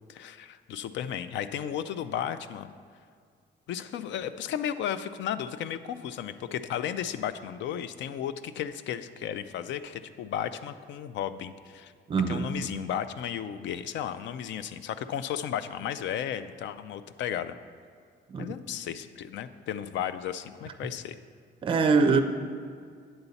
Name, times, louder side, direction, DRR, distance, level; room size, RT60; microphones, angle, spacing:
voice 1, 0.1-2.7 3.7-11.9 12.3-17.5 18.4-21.2, left 9 dB, 70° left, 13 dB, 0.4 m, -34 dB
voice 2, 12.1-12.4 18.3-18.5 21.6-22.2, right 4 dB, 25° right, 6 dB, 0.4 m, -23 dB
8.9 x 7.0 x 4.0 m, 2.1 s
cardioid pair, 175°, 19 cm